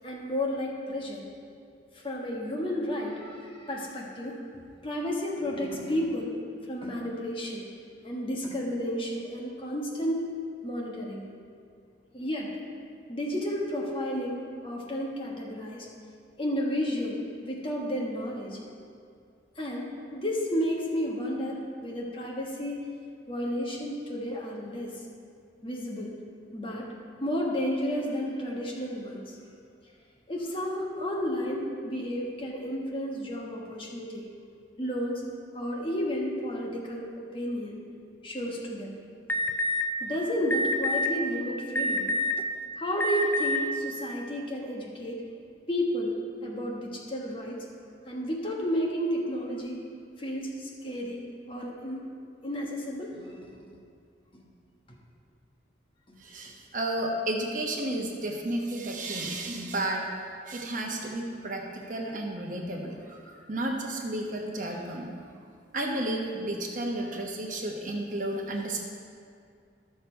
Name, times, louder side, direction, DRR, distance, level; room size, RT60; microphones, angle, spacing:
voice 1, 0.0-1.2 1.9-6.3 6.7-7.7 8.0-10.3 10.6-11.2 12.1-12.6 13.1-15.9 16.4-18.6 19.6-22.9 23.3-24.9 25.6-26.1 26.5-26.9 27.2-29.4 30.3-34.3 34.8-35.2 35.5-37.8 38.2-38.9 40.0-42.1 42.8-45.2 45.7-47.6 48.0-49.8 50.2-51.2 51.5-52.0 52.4-53.6 56.1-56.2, equal, 30° left, -2 dB, 1.3 m, -32 dB
Alarm, 39.3-39.8 40.5-41.1 41.8-42.4 43.0-43.6, left 1 dB, 10° left, 0.4 m, -26 dB
voice 2, 56.2-60.1 60.5-65.2 65.7-68.8, right 1 dB, 45° right, 0 dB, 1.1 m, -32 dB
12.5 x 6.6 x 4.5 m, 2.3 s
head